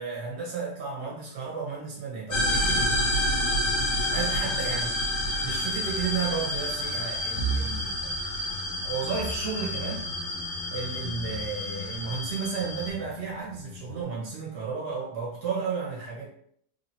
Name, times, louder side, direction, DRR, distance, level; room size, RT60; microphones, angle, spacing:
voice 1, 0.0-3.0 4.1-5.0 5.4-8.0 8.8-10.0 10.7-16.3, right 5 dB, 70° right, -5 dB, 1.9 m, -33 dB
sound 1, 2.3-12.9, left 1 dB, 70° left, 1.6 m, -29 dB
sound 2, 5.2-14.0, right 1 dB, 85° left, 1.2 m, -38 dB
4.0 x 2.5 x 2.9 m, 0.66 s
omnidirectional pair, 1.8 m